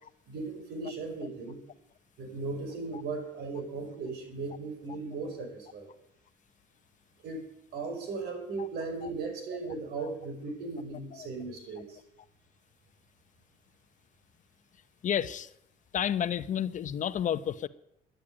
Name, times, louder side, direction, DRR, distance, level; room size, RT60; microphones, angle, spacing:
voice 1, 0.3-1.6 2.2-5.9 7.2-7.5 7.7-12.0, right 3 dB, 75° right, 5.3 m, -37 dB
voice 2, 15.0-15.5 15.9-17.7, left 9 dB, 50° left, 0.8 m, -30 dB
13.5 x 10.5 x 8.8 m
cardioid pair, 110°, 17 cm